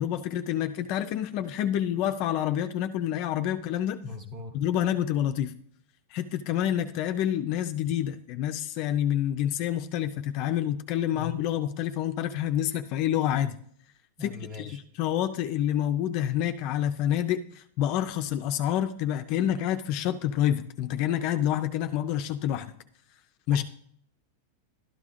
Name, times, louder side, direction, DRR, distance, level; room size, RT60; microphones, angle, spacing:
voice 1, 0.0-4.0 4.5-5.5 6.1-13.6 14.2-14.7 15.0-22.7 23.5-23.6, left 11 dB, 40° left, 7 dB, 0.5 m, -28 dB
voice 2, 4.0-4.6 11.1-11.4 14.2-14.8 23.5-23.6, left 5 dB, 20° right, 3 dB, 1.4 m, -39 dB
12.5 x 11.0 x 2.5 m, 0.63 s
supercardioid pair, 165°, 0 cm